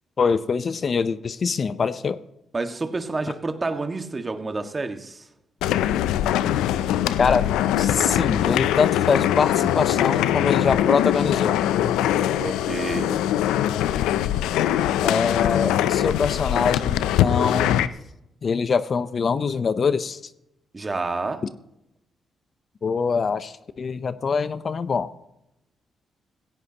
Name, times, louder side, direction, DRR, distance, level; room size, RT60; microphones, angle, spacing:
voice 1, 0.2-2.2 7.2-7.5 7.8-11.6 15.0-17.9 18.4-20.2 22.8-25.1, left 5 dB, 55° left, 14 dB, 0.7 m, -24 dB
voice 2, 2.5-5.3 12.4-13.2 20.7-21.4, right 3 dB, 35° right, 7 dB, 1.7 m, -29 dB
sound 1, 5.6-17.9, left 12 dB, 85° left, 0.5 m, -22 dB
16.5 x 16.5 x 2.9 m, 0.85 s
supercardioid pair, 50°, 0 cm